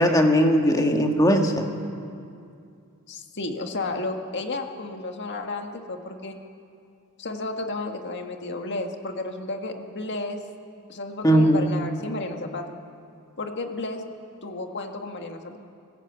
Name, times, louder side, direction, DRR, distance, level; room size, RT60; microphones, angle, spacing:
voice 1, 0.0-1.7 11.2-11.7, equal, 15° left, 3 dB, 1.8 m, -19 dB
voice 2, 3.1-6.4 7.2-10.4 10.9-12.6 13.4-14.0 14.4-15.6, left 2 dB, 55° left, 4 dB, 1.8 m, -32 dB
25.0 x 15.5 x 8.2 m, 2.4 s
head